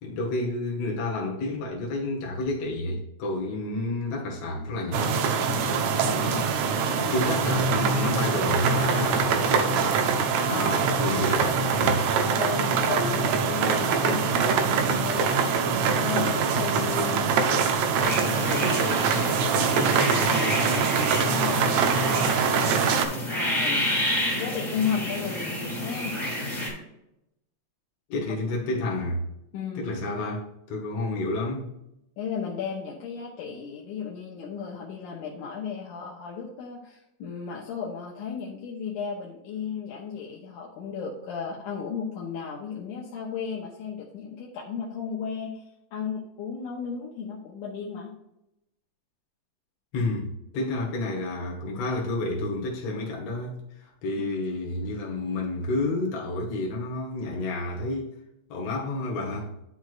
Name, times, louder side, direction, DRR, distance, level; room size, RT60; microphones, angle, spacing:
voice 1, 0.0-6.5 7.0-9.8 10.5-12.0 28.1-29.2 29.8-31.7 49.9-58.1 58.5-59.5, left 2 dB, 60° left, 2.2 m, -30 dB
sound 1, 4.9-23.0, right 5 dB, 75° right, 1.9 m, -24 dB
voice 2, 10.5-10.9 12.4-17.3 17.8-20.7 21.0-22.6 23.3-23.9 24.3-26.2 28.4-28.6 29.5-29.9 32.2-45.6 45.9-48.1, left 6 dB, 80° left, 2.4 m, -35 dB
sound 2, 10.6-16.7, equal, 25° right, 1.8 m, -42 dB
sound 3, 18.0-26.7, left 1 dB, 15° left, 2.5 m, -30 dB
10.0 x 6.2 x 2.5 m
omnidirectional pair, 3.5 m